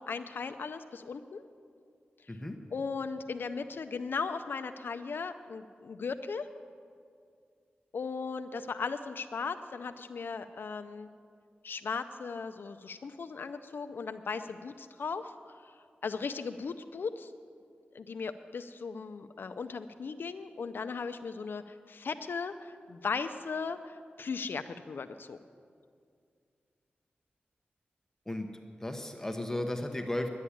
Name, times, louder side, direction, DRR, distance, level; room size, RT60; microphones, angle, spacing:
voice 1, 0.0-1.4 2.3-2.4 2.7-6.5 7.9-11.1 11.6-15.6 16.0-17.3 17.9-25.4, left 5 dB, 70° left, 9 dB, 0.5 m, -37 dB
voice 2, 2.3-2.6 28.3-28.5 28.8-30.3, left 1 dB, 10° left, 4 dB, 1.0 m, -34 dB
11.0 x 8.5 x 10.0 m, 2.3 s
wide cardioid pair, 100°, 4 cm